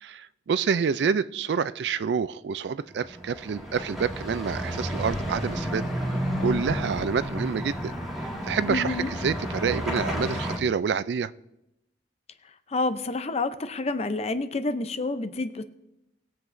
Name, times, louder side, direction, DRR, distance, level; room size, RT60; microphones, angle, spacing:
voice 1, 0.0-7.9 8.5-11.3, right 6 dB, 65° right, 16 dB, 0.4 m, -28 dB
sound 1, 2.9-10.6, equal, ahead, 1.8 m, -31 dB
voice 2, 8.7-9.1 12.7-15.6, left 3 dB, 35° left, 11 dB, 0.6 m, -28 dB
20.0 x 7.6 x 2.6 m, 0.87 s
head